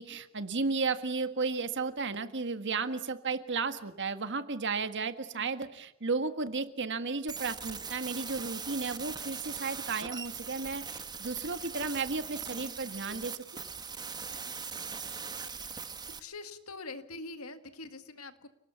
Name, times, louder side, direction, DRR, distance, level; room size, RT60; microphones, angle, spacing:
voice 1, 0.0-10.8 11.2-13.4, right 4 dB, 55° right, 10 dB, 1.6 m, -33 dB
sound 1, 7.3-16.2, right 6 dB, 20° right, 1.4 m, -41 dB
voice 2, 16.2-18.5, left 3 dB, 85° left, 9 dB, 2.0 m, -44 dB
29.5 x 18.5 x 7.1 m, 0.84 s
head